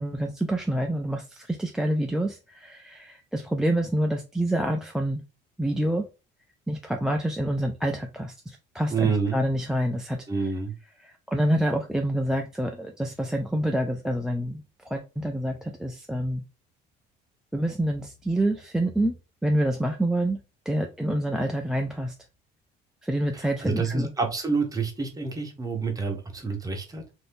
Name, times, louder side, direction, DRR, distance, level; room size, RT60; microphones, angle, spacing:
voice 1, 0.0-5.2 5.6-6.1 6.7-10.2 11.0-16.4 17.5-19.1 19.4-20.4 20.7-22.1 23.0-24.1, right 1 dB, 5° right, 0.3 m, -27 dB
voice 2, 8.9-9.4 10.3-10.7 23.3-27.0, right 4 dB, 20° right, 1.0 m, -28 dB
2.7 x 2.6 x 3.4 m
cardioid pair, 105°, 19 cm